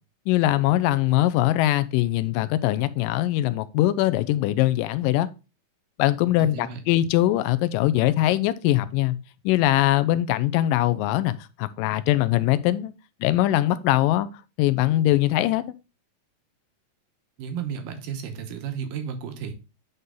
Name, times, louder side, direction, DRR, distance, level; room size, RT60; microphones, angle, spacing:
voice 1, 0.3-5.3 6.0-9.2 9.5-12.9 13.2-14.3 14.6-15.6, left 14 dB, 80° left, 2.1 m, -22 dB
voice 2, 6.4-6.8 17.4-19.5, right 7 dB, 75° right, 2.6 m, -33 dB
9.4 x 4.1 x 3.7 m
omnidirectional pair, 4.1 m